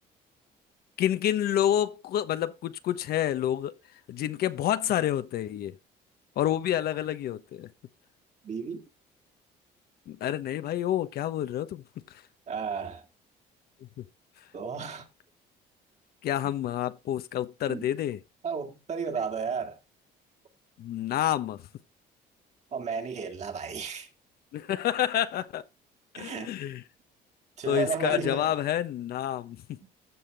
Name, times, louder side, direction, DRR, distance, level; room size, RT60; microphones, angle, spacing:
voice 1, 1.0-3.7 4.1-5.7 6.4-7.7 10.1-11.8 12.1-12.2 16.2-18.2 20.8-21.7 24.5-25.6 26.1-26.8 27.7-29.8, left 11 dB, 65° left, 1.0 m, -28 dB
voice 2, 8.4-8.8 12.5-13.0 14.5-15.1 17.7-17.9 18.4-19.8 22.7-24.1 26.1-26.5 27.6-28.6, right 5 dB, 40° right, 2.3 m, -33 dB
15.0 x 5.9 x 3.5 m
cardioid pair, 110°, 17 cm